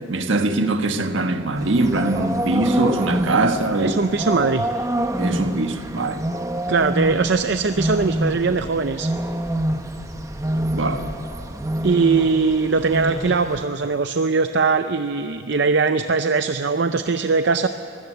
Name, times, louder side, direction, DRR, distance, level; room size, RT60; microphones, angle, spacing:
voice 1, 0.1-3.9 5.2-6.3 10.7-11.0, right 2 dB, 75° right, 1.4 m, -22 dB
sound 1, 1.6-13.6, right 1 dB, 15° right, 0.8 m, -26 dB
voice 2, 3.8-4.7 6.7-9.1 11.8-17.7, right 4 dB, 60° right, 0.5 m, -20 dB
22.5 x 16.5 x 7.9 m
head